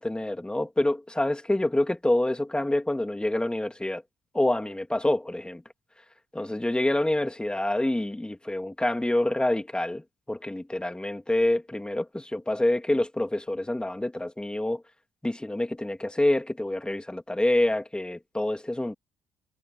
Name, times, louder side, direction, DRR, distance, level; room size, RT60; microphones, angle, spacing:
voice 1, 0.0-4.0 4.3-5.6 6.3-14.8 15.2-18.9, left 1 dB, 10° left, 3.0 m, -27 dB
hypercardioid pair, 50°, 8 cm